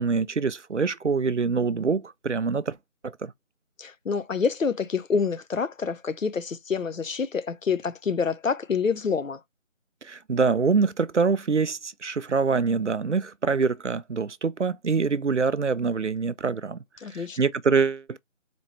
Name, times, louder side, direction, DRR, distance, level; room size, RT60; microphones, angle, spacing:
voice 1, 0.0-2.8 3.2-3.3 10.0-16.8 17.1-18.2, right 5 dB, 60° right, 0.5 m, -25 dB
voice 2, 3.8-9.4 17.0-17.4, left 5 dB, 75° left, 0.7 m, -27 dB
4.3 x 2.9 x 3.0 m
figure-of-eight pair, 175°, 40 cm